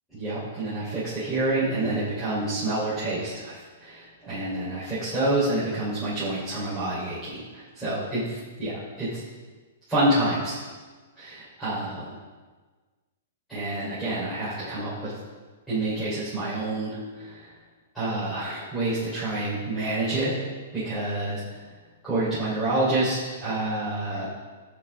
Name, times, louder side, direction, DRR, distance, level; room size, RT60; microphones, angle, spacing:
voice 1, 0.1-9.2 9.9-10.6 11.2-12.1 13.5-15.1 15.7-17.5 17.9-20.3 20.7-21.4 22.0-24.3, right 2 dB, ahead, -14 dB, 4.1 m, -28 dB
14.5 x 8.7 x 3.7 m, 1.4 s
hypercardioid pair, 165°, 0 cm